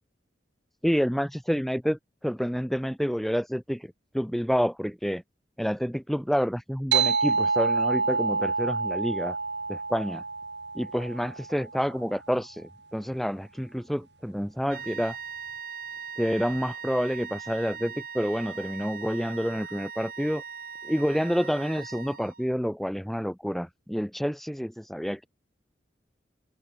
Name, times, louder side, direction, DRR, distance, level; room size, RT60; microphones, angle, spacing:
voice 1, 0.8-5.2 5.6-9.4 9.7-10.2 10.7-15.2 16.2-20.4 20.8-25.3, equal, ahead, 5.2 m, -28 dB
sound 1, 6.9-11.9, right 4 dB, 75° right, 6.8 m, -27 dB
sound 2, 14.7-22.6, right 6 dB, 50° right, 4.7 m, -40 dB
open air
head